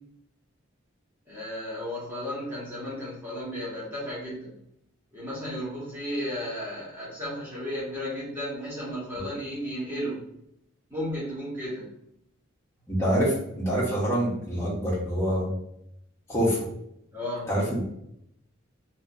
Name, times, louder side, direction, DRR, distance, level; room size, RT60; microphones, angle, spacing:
voice 1, 1.3-4.5 5.1-10.3 10.9-11.9 17.1-17.5, equal, 10° right, -8 dB, 1.2 m, -34 dB
voice 2, 12.9-15.5 16.3-16.6 17.5-17.8, equal, 15° left, -7 dB, 1.0 m, -25 dB
2.9 x 2.8 x 2.6 m, 0.76 s
head